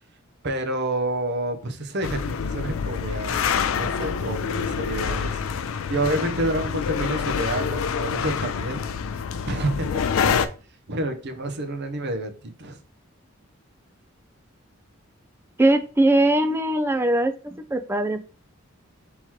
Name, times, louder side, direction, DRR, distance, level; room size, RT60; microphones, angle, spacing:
voice 1, 0.4-3.4 3.7-5.4 5.9-8.8 9.5-10.4 10.9-12.8, right 1 dB, 55° right, 7 dB, 0.7 m, -29 dB
sound 1, 2.0-10.5, left 6 dB, 70° left, 0.4 m, -26 dB
voice 2, 15.6-18.2, right 1 dB, 10° right, 9 dB, 0.4 m, -21 dB
3.7 x 2.9 x 4.5 m, 0.38 s
head